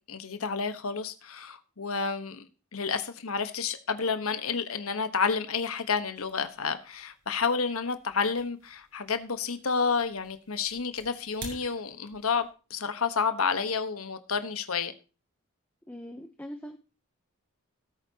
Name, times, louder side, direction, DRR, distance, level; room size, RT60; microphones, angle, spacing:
voice 1, 0.1-14.9, left 5 dB, 80° left, 1.2 m, -30 dB
sound 1, 6.2-12.5, right 3 dB, 50° right, 4.1 m, -50 dB
voice 2, 15.9-16.8, equal, 10° left, 0.7 m, -41 dB
18.0 x 8.4 x 2.9 m
head